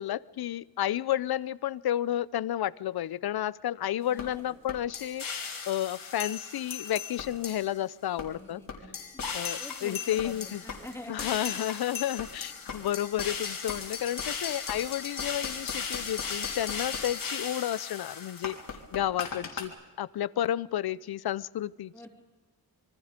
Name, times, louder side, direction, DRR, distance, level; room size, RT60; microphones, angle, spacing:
voice 1, 0.0-5.2 5.7-8.6 9.3-10.6 11.1-18.6 18.9-22.1, left 12 dB, 80° left, 20 dB, 0.7 m, -31 dB
voice 2, 4.1-4.6 8.2-9.3 9.6-11.7 19.1-19.5 21.9-22.1, left 1 dB, 5° left, 2 dB, 3.0 m, -47 dB
sound 1, 4.2-4.3 4.7-7.8 8.2-8.3 8.7-19.6, left 6 dB, 60° left, 3.3 m, -36 dB
26.5 x 23.5 x 5.2 m, 1.2 s
wide cardioid pair, 150°, 38 cm